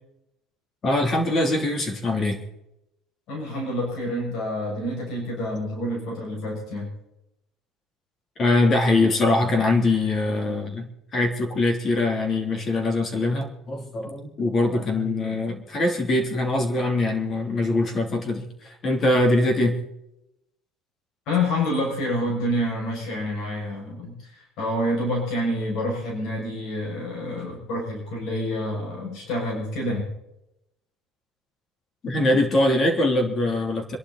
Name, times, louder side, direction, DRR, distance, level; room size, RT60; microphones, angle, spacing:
voice 1, 0.8-2.4 8.4-19.8 32.0-34.0, left 2 dB, 30° left, 4 dB, 3.2 m, -23 dB
voice 2, 3.3-6.9 14.7-14.8 21.3-30.1, left 1 dB, 60° left, -2 dB, 6.8 m, -28 dB
26.5 x 11.5 x 4.2 m, 0.86 s
cardioid pair, 140°, 0 cm